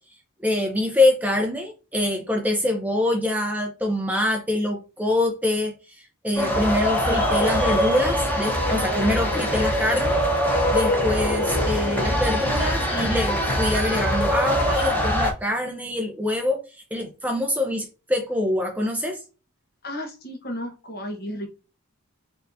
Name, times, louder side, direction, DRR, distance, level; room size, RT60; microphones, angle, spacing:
voice 1, 0.4-10.2 10.7-19.2, left 1 dB, 5° right, 2 dB, 0.7 m, -25 dB
sound 1, 6.4-15.3, equal, 10° left, 1.3 m, -23 dB
voice 2, 19.8-21.5, equal, 45° left, 2 dB, 1.3 m, -33 dB
4.2 x 3.9 x 2.7 m, 0.32 s
head